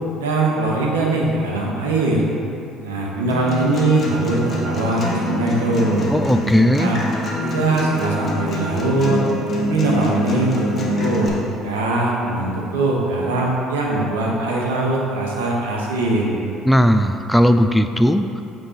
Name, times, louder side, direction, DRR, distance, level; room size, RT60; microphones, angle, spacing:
voice 1, 0.2-2.2 2.8-6.1 6.7-7.0 7.4-9.2 9.7-11.4 11.6-16.4, right 2 dB, 85° right, -2 dB, 1.0 m, -21 dB
Acoustic guitar, 3.3-11.3, equal, 45° left, 1.4 m, -25 dB
voice 2, 6.1-6.9 16.7-18.2, equal, 5° left, 8 dB, 0.3 m, -16 dB
8.7 x 3.7 x 4.1 m, 2.7 s
hypercardioid pair, 60°, 0 cm